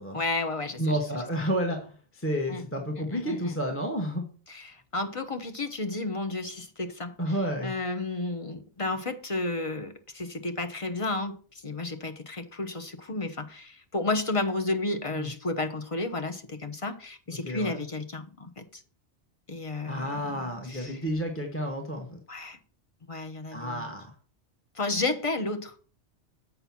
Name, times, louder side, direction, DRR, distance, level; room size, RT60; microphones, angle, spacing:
voice 1, 0.1-1.0 2.5-2.6 3.1-3.6 4.5-7.1 7.6-11.4 11.6-18.8 19.5-21.0 22.3-22.6 23.1-23.8 24.7-25.7, left 2 dB, 30° left, 0.9 m, -32 dB
voice 2, 0.8-4.2 7.2-7.7 15.1-15.3 17.4-17.8 19.8-22.2 23.5-24.1, equal, 10° left, 1.2 m, -31 dB
7.8 x 5.5 x 5.8 m
omnidirectional pair, 1.2 m